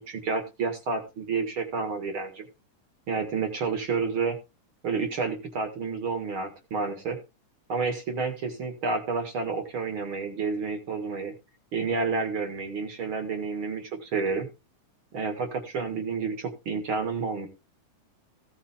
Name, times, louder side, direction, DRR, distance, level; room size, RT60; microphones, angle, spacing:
voice 1, 0.0-2.5 3.1-4.4 4.8-7.2 7.7-11.3 11.7-14.5 15.1-17.5, right 4 dB, 45° right, 6 dB, 2.3 m, -30 dB
16.0 x 7.2 x 3.6 m, 0.28 s
omnidirectional pair, 3.6 m